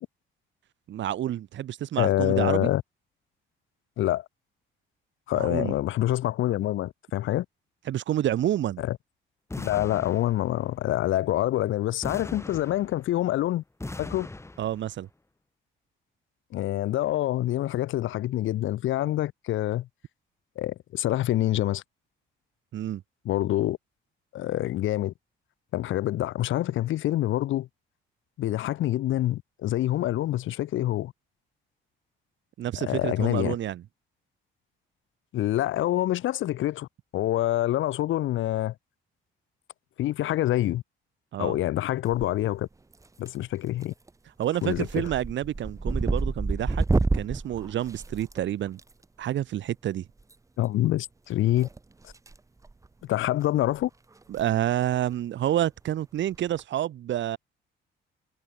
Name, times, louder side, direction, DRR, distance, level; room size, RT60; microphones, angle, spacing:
voice 1, 0.9-2.7 5.3-5.7 7.9-8.8 14.6-15.1 22.7-23.0 32.6-33.8 41.3-41.6 44.4-46.8 47.1-48.8 49.2-50.1 54.3-57.4, right 12 dB, 70° right, 1.3 m, -28 dB
voice 2, 2.0-2.8 4.0-4.2 5.3-7.4 8.8-9.0 9.6-13.6 14.0-14.3 16.5-19.9 20.6-21.8 23.2-23.8 24.3-25.1 25.7-27.7 28.4-31.1 32.8-33.6 35.3-38.7 40.0-40.8 41.4-42.7 43.2-43.9 44.6-45.1 50.6-51.7 52.0-52.1 53.0-53.9, left 14 dB, 80° left, 1.2 m, -26 dB
sound 1, 9.5-10.8 12.0-13.3 13.8-14.9, left 2 dB, 15° left, 2.7 m, -39 dB
sound 2, 42.0-42.6 42.9-43.4 43.8-44.1 44.4-48.8 50.2-50.3 51.6-52.4 52.6-52.9 53.4-53.5 53.7-53.8 54.2-54.4 54.7-54.8 56.3-56.6, right 3 dB, 15° right, 0.8 m, -29 dB
cardioid pair, 90°, 20 cm